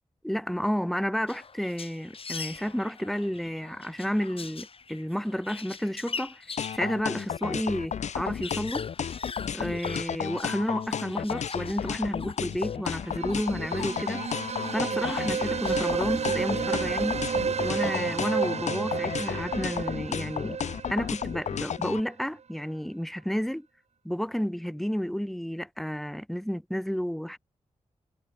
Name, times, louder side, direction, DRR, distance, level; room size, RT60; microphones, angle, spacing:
voice 1, 0.2-6.4 6.7-8.9 9.5-14.2 14.7-17.2 17.6-20.6 20.9-23.7 24.0-27.4, equal, ahead, 1.8 m, -31 dB
sound 1, 1.3-7.5 7.8-7.9 8.1-16.8, left 5 dB, 50° left, 2.2 m, -43 dB
sound 2, 6.6-22.0, left 8 dB, 70° left, 0.6 m, -32 dB
sound 3, 13.0-21.8, right 6 dB, 65° right, 1.2 m, -31 dB
wide cardioid pair, 100°, 12 cm